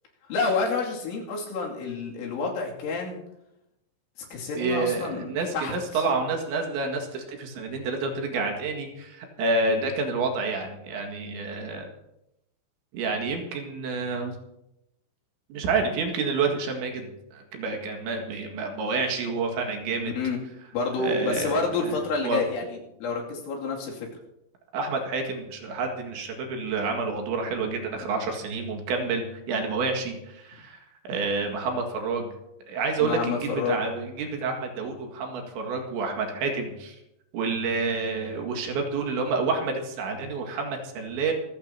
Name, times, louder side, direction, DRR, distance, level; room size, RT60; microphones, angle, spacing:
voice 1, 0.2-3.2 4.2-5.3 5.5-6.0 20.2-20.4 20.7-24.1 33.0-33.8, left 4 dB, 85° left, -2 dB, 5.1 m, -29 dB
voice 2, 4.6-11.9 12.9-14.3 15.5-20.1 21.0-21.9 22.2-22.4 24.7-30.8 31.1-32.3 32.7-37.0 37.3-41.3, right 4 dB, 75° right, 2 dB, 4.2 m, -29 dB
26.0 x 15.0 x 2.9 m, 0.88 s
omnidirectional pair, 5.4 m